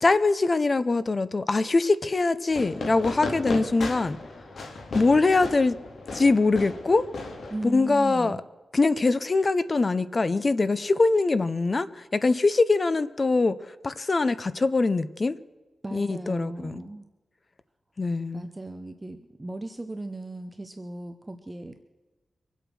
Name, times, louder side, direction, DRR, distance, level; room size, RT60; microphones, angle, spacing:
voice 1, 0.0-4.2 4.9-5.8 6.1-7.0 7.6-8.4 8.7-15.4 15.9-16.8 18.0-18.5, left 3 dB, 30° left, 0.6 m, -23 dB
Fireworks, 2.5-8.0, left 3 dB, 65° left, 2.2 m, -36 dB
voice 2, 7.5-8.4 15.8-17.0 18.3-21.7, right 2 dB, 15° right, 0.7 m, -37 dB
24.5 x 8.2 x 6.2 m
wide cardioid pair, 165°, 0 cm